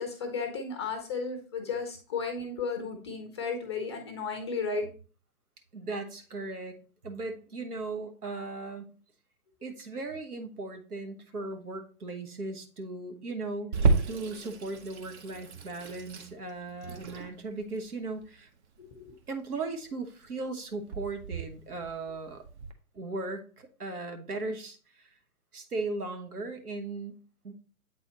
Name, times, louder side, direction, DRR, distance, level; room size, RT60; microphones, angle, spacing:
voice 1, 0.0-4.8 18.9-19.0, left 4 dB, 20° left, 5 dB, 0.5 m, -34 dB
voice 2, 5.7-6.8 7.0-8.9 9.6-18.5 19.3-22.4 22.9-25.1 25.5-27.5, right 3 dB, 80° right, 6 dB, 1.2 m, -37 dB
Water tap faucet / Sink (filling or washing), 13.7-22.7, right 4 dB, 50° right, 1.0 m, -33 dB
8.0 x 4.1 x 2.9 m, 0.38 s
figure-of-eight pair, 130°, 44 cm